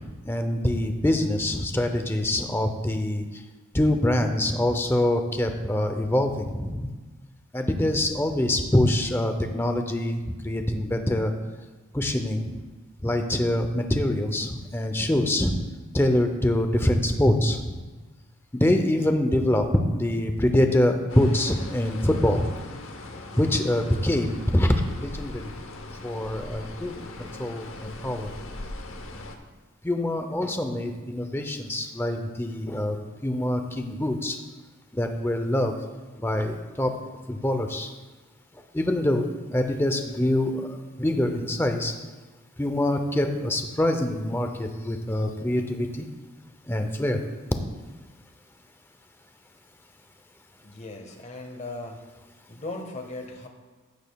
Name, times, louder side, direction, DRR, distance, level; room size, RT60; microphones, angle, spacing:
voice 1, 0.3-3.2 3.7-6.9 7.5-10.2 10.4-11.3 11.9-12.6 13.0-15.5 15.9-17.7 18.6-19.6 19.9-22.5 23.4-25.4 26.0-26.9 27.2-28.3 29.8-33.0 33.2-34.4 34.9-35.7 36.2-36.9 37.3-37.9 38.7-40.7 41.0-41.9 42.6-46.0 46.7-47.2, left 1 dB, 10° left, 6 dB, 0.6 m, -24 dB
sound 1, 21.1-29.4, left 2 dB, 65° left, 0.9 m, -40 dB
voice 2, 50.6-52.0 52.5-53.5, left 2 dB, 30° left, 4 dB, 1.0 m, -37 dB
14.5 x 8.5 x 2.3 m, 1.3 s
head